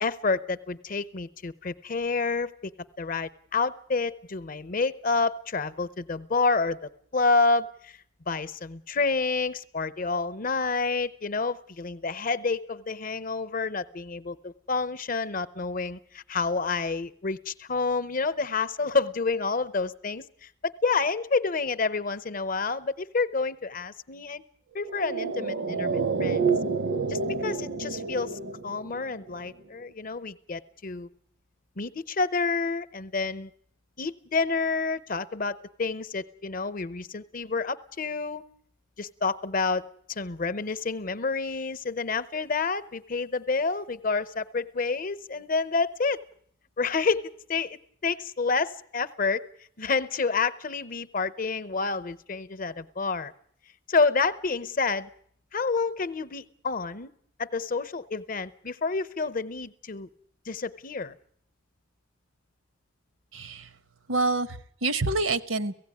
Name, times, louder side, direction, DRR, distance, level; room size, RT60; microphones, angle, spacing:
voice 1, 0.0-2.7 3.0-8.0 8.3-24.4 24.7-26.5 27.1-31.1 31.8-33.5 34.0-38.4 39.0-39.8 40.1-46.2 46.8-49.4 49.8-53.3 53.9-55.1 55.5-57.1 57.4-60.1 60.5-61.1, left 4 dB, 45° left, 15 dB, 0.7 m, -29 dB
sound 1, 24.8-29.4 29.6-29.7, right 4 dB, 70° right, 0.7 m, -29 dB
voice 2, 63.3-63.7 64.1-65.7, right 3 dB, 90° right, 13 dB, 1.0 m, -27 dB
17.0 x 16.0 x 9.7 m, 0.64 s
head